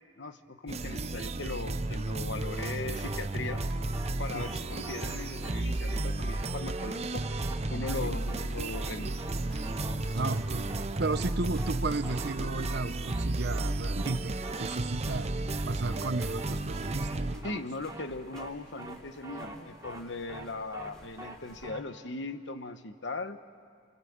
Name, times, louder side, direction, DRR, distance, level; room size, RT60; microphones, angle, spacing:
voice 1, 0.2-3.6 4.2-7.2 7.7-9.1 17.4-23.4, left 3 dB, 70° left, 10 dB, 1.2 m, -39 dB
sound 1, 0.7-17.3, right 2 dB, 35° right, 0.7 m, -33 dB
sound 2, 2.5-21.7, equal, 5° left, 3.9 m, -57 dB
sound 3, 2.6-2.7 3.0-3.2 3.5-3.6 3.9-4.1 4.4-4.5 4.8-5.2 5.4-5.6 5.9-6.0 6.3-6.5 6.8-6.9 7.2-7.5 7.8-8.0 8.3-8.5 8.7-8.9 9.2-9.4 9.6-9.9 10.2-10.4 10.7-10.9 11.1-11.3 11.6-11.8 12.0-12.4 12.6-12.8 13.1-13.2 13.5-13.7 14.0-14.1 14.4-14.8 15.0-15.2 15.5-15.6 15.9-16.1 16.4-16.5 16.8-17.2 17.4-17.6 17.9-18.0 18.3-18.5 18.8-18.9 19.2-19.5 19.8-20.0 20.3-20.5 20.7-20.9 21.2-21.4 21.6-21.8, right 2 dB, 15° right, 3.2 m, -43 dB
voice 2, 10.1-10.7 11.0-15.3 15.6-17.6, right 3 dB, 60° right, 12 dB, 0.9 m, -34 dB
28.5 x 24.0 x 8.1 m, 2.1 s
head